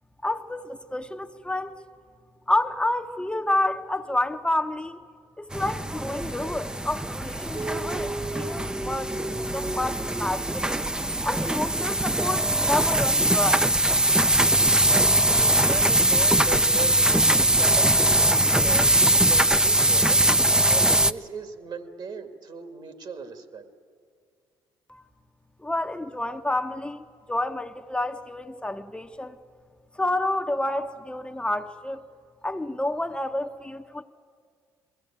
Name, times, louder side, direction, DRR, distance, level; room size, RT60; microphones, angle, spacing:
voice 1, 0.2-1.8 2.5-5.0 5.4-10.8 11.2-13.7 24.9-25.0 25.6-29.4 29.9-32.0 32.4-34.0, left 1 dB, 10° left, 0.9 m, -29 dB
sound 1, 5.5-21.1, right 1 dB, 10° right, 0.6 m, -22 dB
Dog, 7.5-11.5 12.6-12.7 14.8-14.9, right 2 dB, 25° right, 1.1 m, -36 dB
voice 2, 14.9-20.3 20.7-23.7, right 5 dB, 55° right, 2.0 m, -38 dB
21.5 x 16.0 x 8.8 m
supercardioid pair, 65°, 9 cm